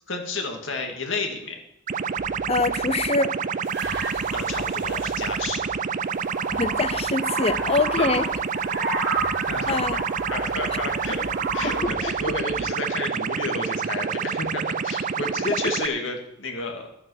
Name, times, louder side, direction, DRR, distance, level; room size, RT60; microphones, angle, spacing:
voice 1, 0.1-1.6 4.3-5.7 8.0-8.3 8.7-8.8 9.5-10.0 10.3-11.3 11.5-16.9, left 3 dB, 75° left, 2.2 m, -31 dB
sound 1, 1.9-15.9, right 6 dB, 40° right, 0.5 m, -28 dB
sound 2, 2.2-3.1 3.8-5.7 6.5-7.2 7.5-8.5 9.1-12.8, right 1 dB, 15° left, 2.2 m, -43 dB
voice 2, 2.5-3.4 6.5-8.3 9.7-10.0 12.0-12.1, left 3 dB, 30° left, 0.6 m, -24 dB
sound 3, 3.6-5.3 6.0-11.8, right 3 dB, 65° right, 3.3 m, -32 dB
12.0 x 8.8 x 6.5 m
head